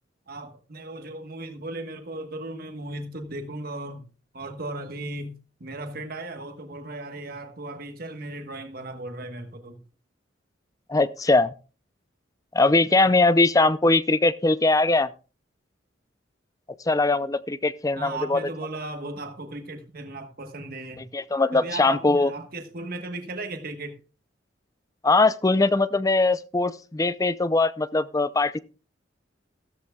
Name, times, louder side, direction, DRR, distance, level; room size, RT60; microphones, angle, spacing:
voice 1, 0.3-4.0 4.3-9.8 18.0-21.1 21.5-24.0, right 2 dB, 50° right, 1.3 m, -36 dB
voice 2, 10.9-11.5 12.5-15.1 16.9-18.5 21.1-22.3 25.0-28.6, left 3 dB, 20° left, 0.5 m, -21 dB
14.5 x 13.5 x 2.3 m
head